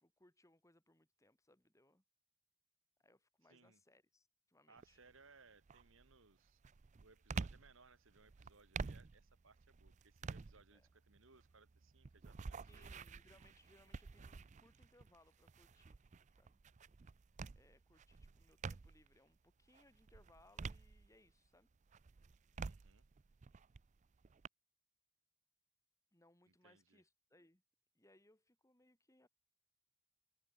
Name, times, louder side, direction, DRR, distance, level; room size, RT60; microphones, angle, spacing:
voice 1, 0.0-2.0 3.0-5.0 10.7-10.9 12.6-16.0 16.4-16.6 17.5-21.7 26.1-27.6 27.9-29.3, left 1 dB, 15° left, 2.1 m, -70 dB
voice 2, 3.4-3.8 4.7-6.6 7.0-12.9 22.6-23.1 26.5-27.0, right 4 dB, 60° right, 2.2 m, -67 dB
sound 1, 4.8-5.2 5.7-19.2 19.6-21.5 21.9-24.5, right 4 dB, 30° right, 0.4 m, -50 dB
head